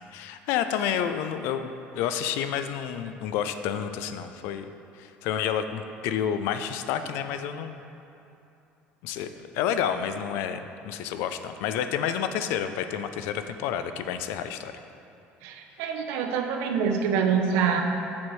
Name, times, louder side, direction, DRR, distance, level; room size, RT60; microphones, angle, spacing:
voice 1, 0.1-4.7 4.9-7.8 9.0-14.7, left 9 dB, 75° left, 9 dB, 0.3 m, -30 dB
voice 2, 15.4-17.8, right 6 dB, 80° right, 4 dB, 0.6 m, -25 dB
7.1 x 6.1 x 3.1 m, 2.8 s
cardioid pair, 170°, 4 cm